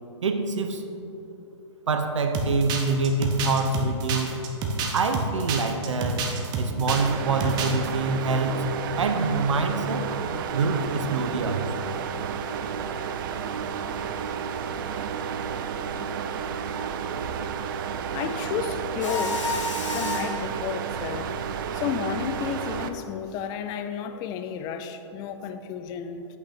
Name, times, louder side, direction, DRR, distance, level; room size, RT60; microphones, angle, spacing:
voice 1, 0.2-0.8 1.9-4.4 4.9-6.3 6.6-8.7 9.0-10.1 10.5-11.9 13.4-14.1, right 3 dB, 80° right, 6 dB, 0.8 m, -26 dB
sound 1, 2.3-7.1 7.4-7.9, right 4 dB, 25° right, 0.9 m, -29 dB
sound 2, 6.9-22.9, right 7 dB, 45° right, 0.5 m, -31 dB
voice 2, 18.1-19.6 19.9-21.3 21.7-26.3, left 8 dB, 25° left, 9 dB, 0.4 m, -32 dB
Mechanisms, 19.0-20.5, left 1 dB, 85° left, 1.1 m, -30 dB
8.2 x 5.8 x 4.4 m, 3.0 s
hypercardioid pair, 135°, 15 cm